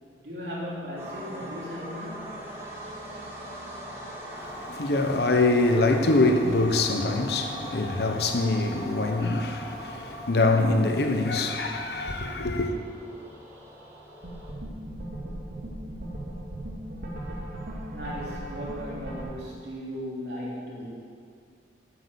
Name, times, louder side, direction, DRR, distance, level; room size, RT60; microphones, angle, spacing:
voice 1, 0.2-2.4 17.9-20.9, equal, 70° right, 3.1 m, -36 dB
sound 1, 1.0-14.5, equal, 15° right, 1.6 m, -40 dB
voice 2, 4.3-12.8, left 2 dB, 65° left, 0.9 m, -24 dB
sound 2, 14.2-19.2, right 1 dB, 55° right, 2.5 m, -37 dB
8.6 x 8.4 x 7.0 m
head